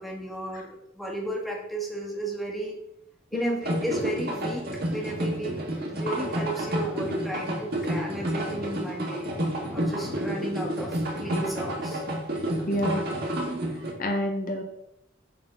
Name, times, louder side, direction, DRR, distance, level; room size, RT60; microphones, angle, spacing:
voice 1, 0.0-2.8 3.3-4.6 4.9-9.3 9.7-12.0, right 1 dB, ahead, -1 dB, 1.5 m, -34 dB
sound 1, 3.6-13.9, right 1 dB, 55° right, 1.8 m, -30 dB
voice 2, 12.7-13.0 14.0-14.6, equal, 45° left, 3 dB, 0.9 m, -28 dB
7.3 x 4.2 x 5.8 m, 0.80 s
head